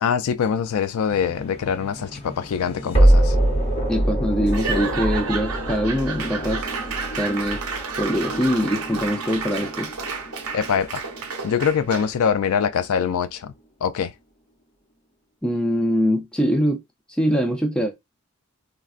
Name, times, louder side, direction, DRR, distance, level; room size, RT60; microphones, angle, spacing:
voice 1, 0.0-3.4 10.5-11.0 11.4-13.5 13.8-14.1, left 7 dB, 85° left, 0.4 m, -23 dB
sound 1, 1.1-12.1, right 1 dB, 30° left, 0.8 m, -25 dB
voice 2, 3.9-6.7 7.1-7.6 8.0-9.9 15.4-16.8 17.2-17.9, equal, 5° left, 0.4 m, -23 dB
Laughter / Applause / Crowd, 4.5-12.2, right 5 dB, 90° right, 0.7 m, -31 dB
3.6 x 2.2 x 2.4 m
head